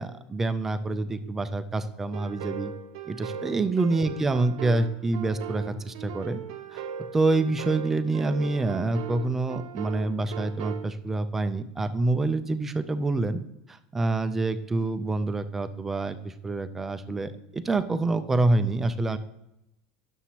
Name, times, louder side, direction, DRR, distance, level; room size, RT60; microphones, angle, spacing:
voice 1, 0.0-2.7 3.1-6.4 6.7-6.8 7.1-13.4 13.7-19.2, right 2 dB, 10° right, 10 dB, 0.4 m, -27 dB
sound 1, 2.1-10.9, right 8 dB, 65° right, 0.7 m, -38 dB
11.0 x 7.1 x 2.9 m, 0.85 s
supercardioid pair, 175°, 3 cm